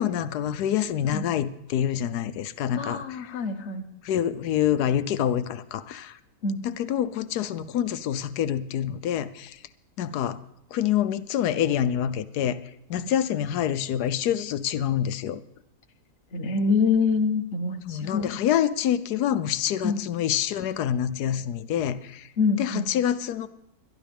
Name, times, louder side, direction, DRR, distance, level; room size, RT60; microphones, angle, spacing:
voice 1, 0.0-3.3 4.0-6.2 6.6-9.6 10.0-10.4 10.7-12.6 12.9-15.4 17.9-22.3 22.6-23.5, left 10 dB, 80° left, 13 dB, 1.2 m, -26 dB
voice 2, 2.8-3.8 6.4-6.6 16.3-18.4 19.8-20.0 22.4-22.9, left 4 dB, 50° left, 4 dB, 1.4 m, -25 dB
21.5 x 12.5 x 3.5 m, 0.81 s
omnidirectional pair, 1.7 m